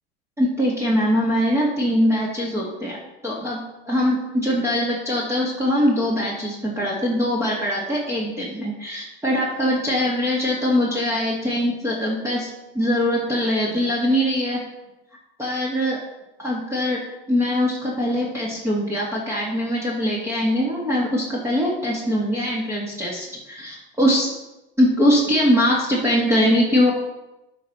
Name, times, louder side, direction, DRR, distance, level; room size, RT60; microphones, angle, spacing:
voice 1, 0.4-12.5 12.7-14.6 15.4-16.0 16.4-17.0 17.3-24.3 24.8-26.9, equal, 10° right, -5 dB, 1.9 m, -22 dB
12.5 x 5.4 x 4.2 m, 0.97 s
hypercardioid pair, 110°, 33 cm